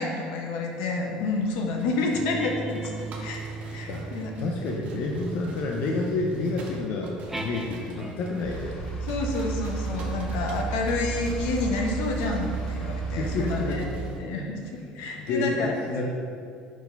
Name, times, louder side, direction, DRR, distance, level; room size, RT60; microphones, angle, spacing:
voice 1, 0.0-3.4 3.7-4.3 9.0-13.9 14.2-14.6 14.9-15.8, left 3 dB, 85° left, 1 dB, 0.9 m, -29 dB
sound 1, 1.2-14.2, right 2 dB, 50° right, 0.8 m, -46 dB
sound 2, 2.1-8.5 9.3-14.2, right 3 dB, 10° right, 0.5 m, -41 dB
voice 2, 4.4-8.8 13.1-14.0 14.7-14.8 15.2-16.1, left 3 dB, 60° left, 0 dB, 0.6 m, -29 dB
sound 3, 8.4-13.7, right 5 dB, 25° left, 1.0 m, -32 dB
4.7 x 4.1 x 5.3 m, 2.4 s
cardioid pair, 135°, 3 cm